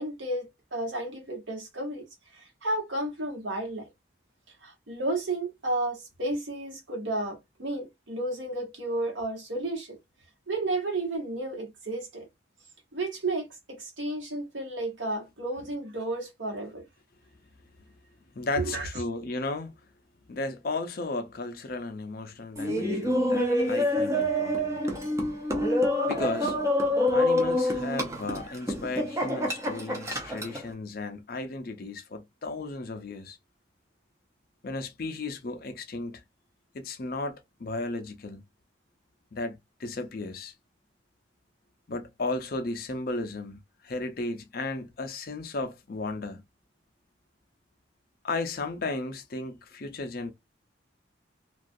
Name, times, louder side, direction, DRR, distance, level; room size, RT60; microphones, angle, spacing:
voice 1, 0.0-2.0 2.3-3.8 4.6-10.0 10.5-12.3 12.9-13.5 13.8-16.8 18.6-18.9, right 2 dB, 80° right, 1.1 m, -32 dB
voice 2, 18.3-19.7 20.3-24.8 26.1-26.6 27.1-33.4 34.6-36.2 36.7-38.4 39.3-40.5 41.9-46.4 48.2-50.3, left 3 dB, 50° left, 0.5 m, -34 dB
Laughter, 22.6-30.7, left 1 dB, 15° right, 0.6 m, -27 dB
2.3 x 2.3 x 2.5 m
head